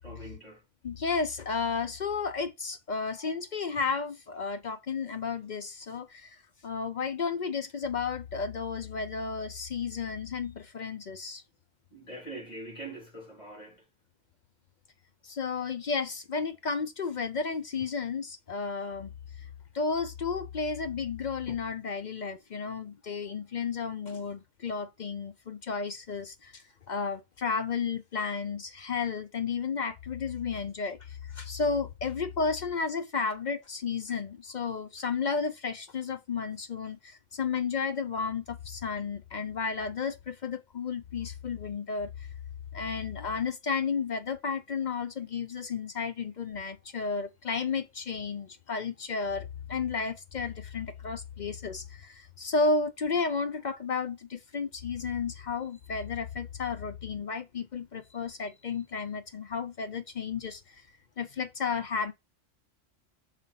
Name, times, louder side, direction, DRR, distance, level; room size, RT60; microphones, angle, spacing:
voice 1, 0.0-0.6 11.9-13.8, right 2 dB, 35° left, 3.2 m, -43 dB
voice 2, 0.8-6.4 6.6-11.4 15.2-19.1 19.4-19.5 19.7-42.3 42.7-60.8 61.2-62.1, left 5 dB, 50° left, 0.6 m, -33 dB
5.7 x 4.1 x 5.4 m
omnidirectional pair, 1.3 m